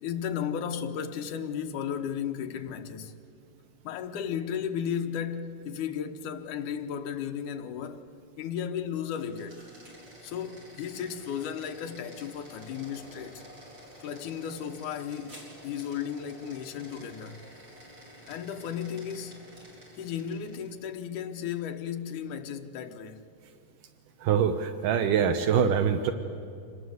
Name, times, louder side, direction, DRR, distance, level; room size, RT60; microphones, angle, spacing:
voice 1, 0.0-3.2 3.8-8.1 8.4-9.6 10.2-13.4 14.0-17.4 18.3-19.4 20.0-23.2, left 8 dB, 70° left, 2.5 m, -34 dB
sound 1, 9.0-20.8, equal, 30° right, 4.8 m, -50 dB
voice 2, 24.2-26.1, right 7 dB, 75° right, 2.5 m, -24 dB
26.5 x 20.0 x 8.0 m
omnidirectional pair, 3.8 m